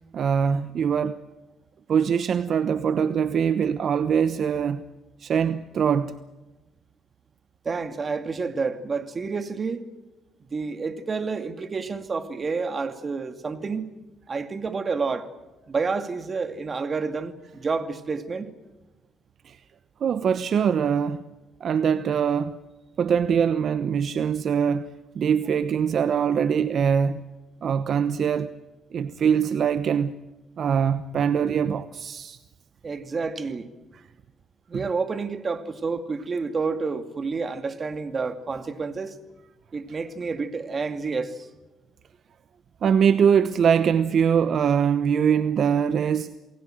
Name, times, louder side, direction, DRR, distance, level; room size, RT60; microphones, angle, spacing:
voice 1, 0.1-1.2 1.9-4.8 5.2-6.2 19.4-19.6 20.0-21.2 21.6-22.6 23.0-27.2 27.6-28.6 28.9-30.2 30.6-32.4 34.7-34.8 42.8-46.3, right 7 dB, 60° right, 1.0 m, -23 dB
voice 2, 7.6-9.8 10.5-13.9 14.3-15.3 15.7-18.5 32.8-33.7 34.7-39.2 39.7-41.5, right 4 dB, 35° right, 2.5 m, -29 dB
29.0 x 20.0 x 7.8 m
cardioid pair, 90°, 0 cm